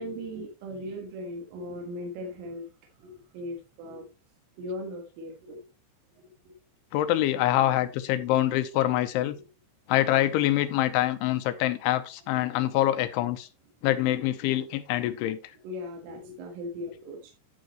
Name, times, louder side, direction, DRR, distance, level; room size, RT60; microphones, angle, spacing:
voice 1, 0.0-2.7 3.0-4.1 4.6-5.7 6.2-6.6 9.3-9.4 11.5-11.6 15.6-17.3, left 1 dB, 80° right, 4.2 m, -38 dB
voice 2, 6.9-9.4 9.9-13.5 13.8-15.4, left 14 dB, 80° left, 3.2 m, -25 dB
10.5 x 9.2 x 3.1 m
omnidirectional pair, 5.7 m